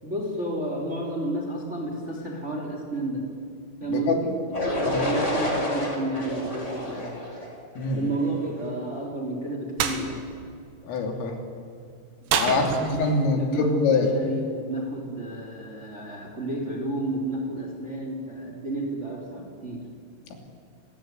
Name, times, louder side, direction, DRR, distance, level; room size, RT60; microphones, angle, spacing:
voice 1, 0.0-3.3 3.8-7.2 7.9-10.2 12.2-19.9, right 1 dB, 15° right, 2 dB, 3.1 m, -31 dB
sound 1, 4.5-8.4, equal, 15° left, 4.2 m, -29 dB
sound 2, 9.8-10.0 12.3-13.2, right 7 dB, 70° right, 4.2 m, -27 dB
voice 2, 10.9-11.4 12.3-14.1, left 3 dB, 80° left, 3 dB, 5.6 m, -24 dB
29.0 x 20.5 x 9.6 m, 2.3 s
omnidirectional pair, 5.8 m